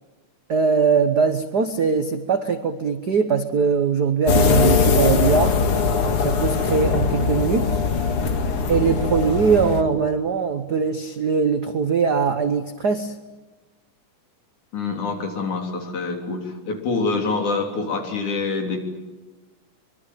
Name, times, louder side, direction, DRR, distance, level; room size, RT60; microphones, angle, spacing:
voice 1, 0.5-5.6 6.2-7.8 8.7-13.1, right 5 dB, 90° right, 8 dB, 0.8 m, -21 dB
sound 1, 4.3-9.8, left 5 dB, 50° left, 2.5 m, -20 dB
voice 2, 14.7-18.8, left 4 dB, 65° left, 3 dB, 4.9 m, -26 dB
24.5 x 23.0 x 9.1 m, 1.2 s
omnidirectional pair, 3.7 m